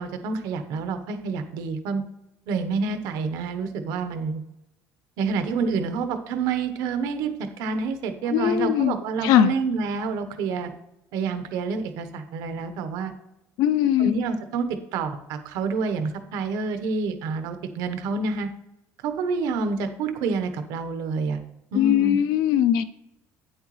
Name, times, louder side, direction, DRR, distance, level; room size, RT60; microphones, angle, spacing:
voice 1, 0.0-2.0 2.5-4.4 5.2-10.7 11.1-13.1 14.0-18.5 19.0-21.4 21.7-22.2, right 4 dB, 75° right, 8 dB, 1.1 m, -28 dB
voice 2, 8.3-8.9 9.2-9.5 13.6-14.1 21.7-22.8, left 11 dB, 65° left, 12 dB, 0.4 m, -20 dB
9.2 x 7.9 x 3.2 m, 0.87 s
cardioid pair, 180°, 7 cm